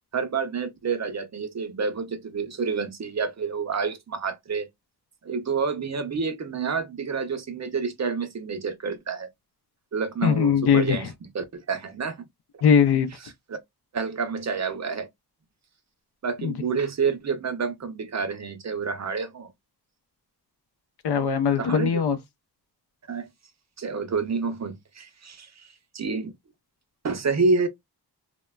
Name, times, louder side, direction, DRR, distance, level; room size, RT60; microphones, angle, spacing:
voice 1, 0.1-4.7 5.2-9.3 9.9-11.1 11.3-12.2 13.5-13.6 13.9-15.1 16.2-19.5 21.6-22.0 23.1-23.3 23.8-26.3 27.0-27.7, right 5 dB, 45° right, 0.5 m, -28 dB
voice 2, 10.2-11.1 12.6-13.1 16.4-16.6 21.0-22.2, left 7 dB, 75° left, 0.5 m, -21 dB
3.1 x 2.1 x 2.2 m
wide cardioid pair, 130°, 40 cm